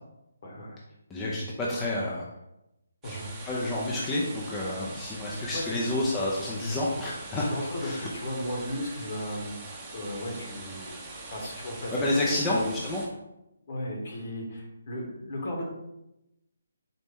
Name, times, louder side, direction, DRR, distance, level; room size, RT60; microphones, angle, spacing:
voice 1, 0.4-0.8 3.0-3.3 4.7-5.9 7.4-9.5 9.9-11.0 11.3-11.9 12.3-12.7 13.7-15.6, left 1 dB, 50° left, -1 dB, 1.4 m, -35 dB
voice 2, 1.1-2.3 3.1-3.2 3.5-7.5 7.8-8.1 11.9-13.1, left 1 dB, 15° left, -5 dB, 0.6 m, -29 dB
sound 1, 3.0-13.1, right 2 dB, 20° right, 0.9 m, -43 dB
4.1 x 3.0 x 3.6 m, 0.90 s
figure-of-eight pair, 145°, 0 cm